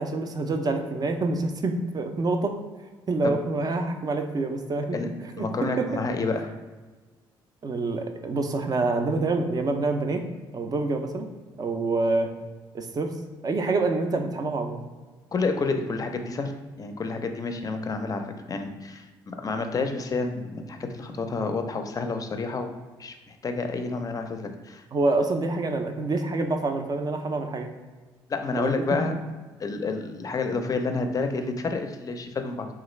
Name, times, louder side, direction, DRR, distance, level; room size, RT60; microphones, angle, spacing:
voice 1, 0.0-2.6 3.1-5.9 7.6-10.2 10.5-11.3 11.6-12.3 12.7-13.1 13.4-14.8 24.9-27.7 28.6-28.7, right 3 dB, 35° right, 6 dB, 0.5 m, -26 dB
voice 2, 5.4-6.5 15.3-22.7 23.0-24.8 28.3-29.1 29.6-32.7, left 3 dB, 35° left, 6 dB, 0.5 m, -29 dB
3.1 x 2.4 x 3.1 m, 1.3 s
supercardioid pair, 60°, 11 cm